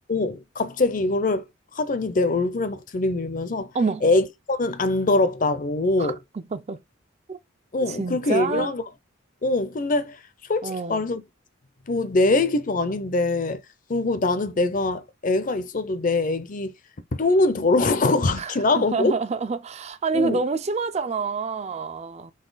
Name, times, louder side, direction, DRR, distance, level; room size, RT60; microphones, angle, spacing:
voice 1, 0.1-1.4 1.7-3.7 4.0-6.2 7.7-8.8 9.4-10.2 10.5-11.2 11.9-13.6 13.9-16.7 17.1-19.2 20.1-20.4, left 2 dB, 40° left, 0.6 m, -23 dB
voice 2, 3.7-4.1 6.0-6.1 6.5-6.8 7.3-7.4 7.9-8.7 10.6-11.0 18.4-22.3, right 4 dB, 30° right, 0.4 m, -27 dB
4.1 x 3.1 x 3.9 m
head